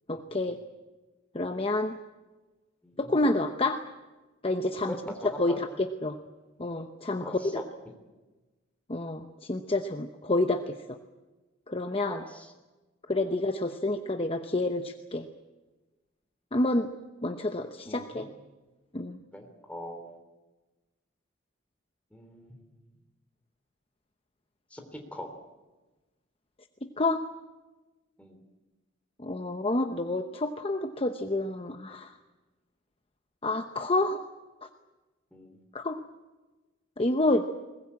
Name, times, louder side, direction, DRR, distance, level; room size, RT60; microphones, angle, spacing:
voice 1, 0.1-0.6 1.3-2.0 3.0-3.8 4.4-4.9 5.4-6.2 6.6-7.6 8.9-10.7 11.7-12.2 13.1-15.3 16.5-16.9 17.2-18.3 18.9-19.2 26.8-27.2 29.2-32.1 33.4-34.2 35.7-36.0 37.0-37.5, left 2 dB, 30° left, 6 dB, 0.9 m, -28 dB
voice 2, 2.8-3.2 4.9-5.6 7.2-7.6 12.1-12.5 17.9-18.3 19.3-20.1 22.1-22.9 24.7-25.3 28.2-28.4 35.3-35.6, equal, 5° left, 4 dB, 3.4 m, -42 dB
21.5 x 20.0 x 8.7 m, 1.2 s
head